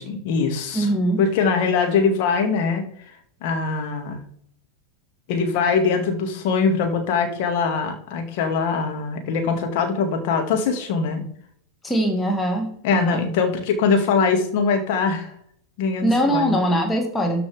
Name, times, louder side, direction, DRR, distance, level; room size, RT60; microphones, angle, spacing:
voice 1, 0.0-0.9 1.2-2.8 3.4-4.2 5.3-11.3 12.8-15.3 15.8-16.6, left 5 dB, 50° left, 5 dB, 2.4 m, -22 dB
voice 2, 0.7-1.2 11.8-13.2 16.0-17.4, right 1 dB, 10° left, 3 dB, 2.3 m, -22 dB
13.0 x 5.8 x 3.7 m, 0.65 s
figure-of-eight pair, 90°, 0 cm